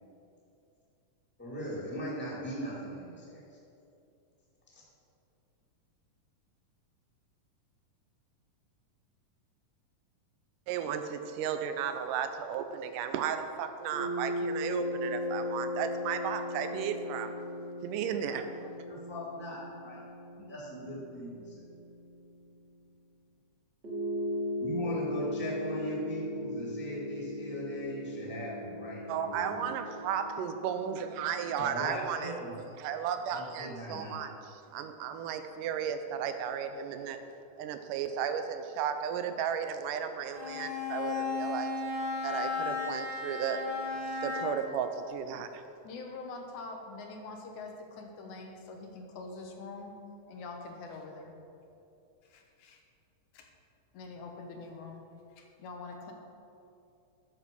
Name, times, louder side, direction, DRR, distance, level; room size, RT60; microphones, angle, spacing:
voice 1, 1.4-3.6 4.7-4.8 18.2-18.4 18.9-20.0 20.5-21.5 24.6-29.7 31.6-32.6 33.3-34.2, equal, 5° left, -6 dB, 2.0 m, -39 dB
voice 2, 10.7-17.3 17.8-18.5 29.1-32.3 32.8-37.2 37.6-41.7 42.2-43.6 44.2-45.6, right 8 dB, 85° right, 8 dB, 2.2 m, -34 dB
sound 1, 13.9-22.6 23.8-31.5, left 1 dB, 25° right, 2.1 m, -38 dB
Bowed string instrument, 40.3-44.7, left 4 dB, 65° right, 2.9 m, -35 dB
voice 3, 45.8-50.0 50.3-51.3 52.3-52.8 53.3-53.5 53.9-55.0 55.4-56.1, left 3 dB, 75° left, 2 dB, 2.3 m, -44 dB
11.0 x 7.1 x 5.4 m, 2.6 s
omnidirectional pair, 3.7 m